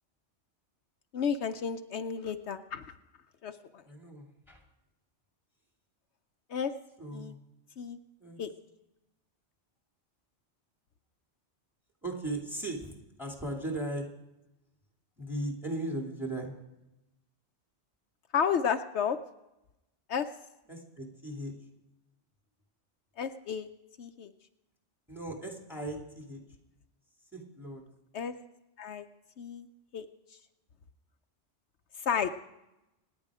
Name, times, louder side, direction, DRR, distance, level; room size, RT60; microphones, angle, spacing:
voice 1, 1.1-2.9 3.4-3.8 6.5-6.7 7.1-7.3 7.8-8.0 8.4-8.5 18.3-19.2 20.1-20.3 23.2-23.7 24.0-24.3 28.1-28.3 28.8-29.1 29.4-29.7 29.9-30.0 32.0-32.3, left 7 dB, 70° left, 8 dB, 1.0 m, -32 dB
voice 2, 3.8-4.6 7.0-7.4 8.2-8.4 12.0-14.1 15.2-16.6 20.7-21.5 25.1-26.4 27.3-27.8, right 1 dB, ahead, 1 dB, 2.5 m, -37 dB
26.5 x 9.7 x 4.9 m, 0.95 s
omnidirectional pair, 1.2 m